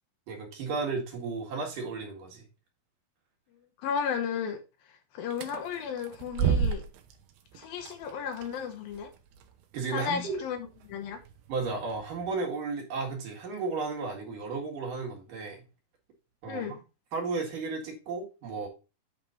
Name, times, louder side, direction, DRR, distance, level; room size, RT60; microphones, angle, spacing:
voice 1, 0.3-2.5 9.7-10.4 11.5-15.6 16.4-16.7 17.1-18.7, right 4 dB, 60° right, 3.4 m, -34 dB
voice 2, 3.8-4.6 5.1-6.8 7.5-9.1 9.9-11.2 16.5-16.8, left 7 dB, 75° left, 2.7 m, -34 dB
sound 1, 5.3-12.3, right 7 dB, 85° right, 2.9 m, -35 dB
9.0 x 5.3 x 4.0 m
omnidirectional pair, 4.4 m